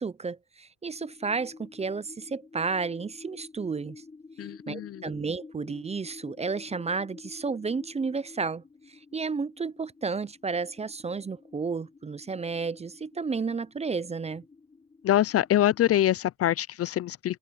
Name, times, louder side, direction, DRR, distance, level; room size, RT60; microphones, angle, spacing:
voice 1, 0.0-4.0 4.7-8.6 8.9-14.4, right 4 dB, 20° right, 0.5 m, -32 dB
sound 1, 1.0-16.0, left 3 dB, 20° left, 1.8 m, -50 dB
voice 2, 4.4-5.1 15.0-17.4, left 12 dB, 50° left, 0.5 m, -25 dB
cardioid pair, 90°, 30 cm